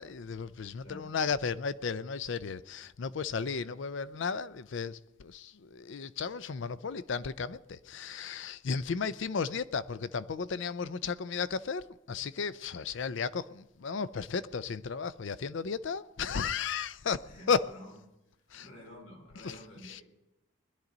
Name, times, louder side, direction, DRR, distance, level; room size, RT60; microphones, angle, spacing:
voice 1, 0.0-17.6 18.5-18.7 19.4-19.6 19.8-20.0, left 5 dB, 65° left, 0.5 m, -34 dB
voice 2, 0.8-1.2 17.2-17.9 18.6-20.0, equal, 85° left, 5.4 m, -50 dB
21.0 x 11.0 x 3.9 m
head